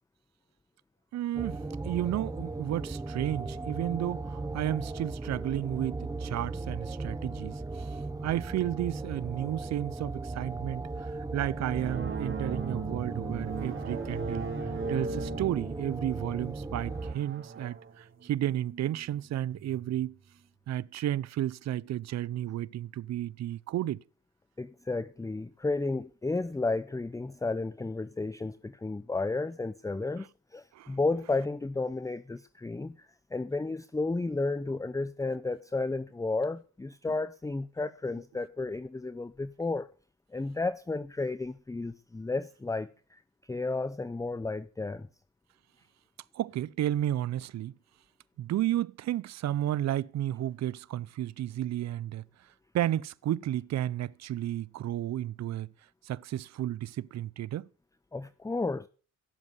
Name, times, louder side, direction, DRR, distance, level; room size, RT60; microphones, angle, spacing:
voice 1, 1.1-14.5 14.9-20.2 20.7-24.0 30.7-31.0 46.3-47.7 48.4-52.2 52.7-55.7 56.0-57.7, right 12 dB, 60° right, 0.7 m, -32 dB
sound 1, 1.3-17.1, right 3 dB, 10° right, 0.9 m, -37 dB
sound 2, 11.7-19.9, right 5 dB, 40° right, 2.4 m, -39 dB
voice 2, 24.6-30.3 30.5-39.9 40.3-45.1 58.1-58.9, left 3 dB, 10° left, 0.7 m, -32 dB
17.0 x 7.4 x 9.8 m
cardioid pair, 90°, 30 cm